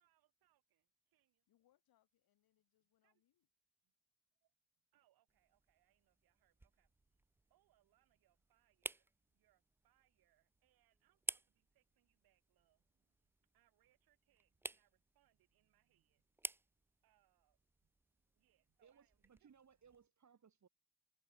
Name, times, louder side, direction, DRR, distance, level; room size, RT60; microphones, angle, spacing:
voice 1, 0.0-1.4 3.0-3.2 4.4-4.5 4.9-16.4 17.0-19.5, right 14 dB, 75° right, 2.7 m, -81 dB
voice 2, 1.5-3.5, left 13 dB, 75° left, 2.9 m, -80 dB
sound 1, 5.3-20.1, right 2 dB, 5° right, 0.3 m, -54 dB
voice 3, 18.8-20.7, right 7 dB, 50° right, 2.6 m, -67 dB
hypercardioid pair, 45°, 36 cm